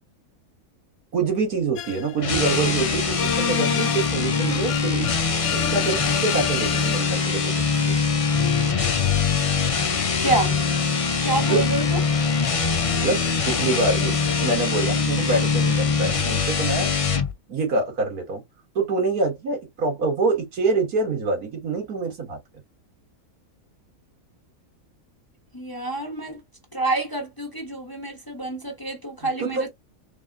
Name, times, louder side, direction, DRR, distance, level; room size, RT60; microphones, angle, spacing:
voice 1, 1.1-7.6 11.5-11.6 13.0-16.9 17.5-18.4 18.8-22.4 29.4-29.7, right 3 dB, 85° right, 2.0 m, -26 dB
sound 1, 1.8-7.4 8.3-14.6, left 10 dB, 65° left, 0.8 m, -32 dB
sound 2, 2.2-17.3, left 5 dB, 45° left, 0.4 m, -23 dB
voice 2, 10.2-10.6 11.2-12.0 25.5-26.4 26.7-29.7, right 2 dB, 15° left, 0.9 m, -27 dB
4.0 x 3.8 x 2.4 m
omnidirectional pair, 1.5 m